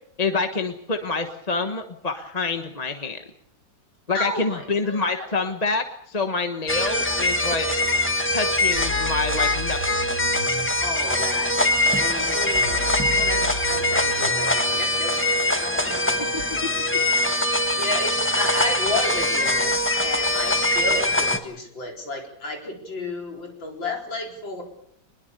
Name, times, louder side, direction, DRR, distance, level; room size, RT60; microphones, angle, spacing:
voice 1, 0.2-3.2 4.1-7.7 8.3-9.8, left 3 dB, 25° left, 6 dB, 1.2 m, -27 dB
voice 2, 4.1-5.4 10.8-12.8 13.2-16.2 17.7-24.6, left 2 dB, 90° left, 2 dB, 5.1 m, -32 dB
sound 1, 6.7-21.4, left 1 dB, 5° left, 1.4 m, -23 dB
sound 2, 8.8-10.7 12.6-14.6 16.4-16.5, left 1 dB, 65° left, 4.4 m, -34 dB
24.5 x 21.5 x 6.8 m, 0.70 s
omnidirectional pair, 2.0 m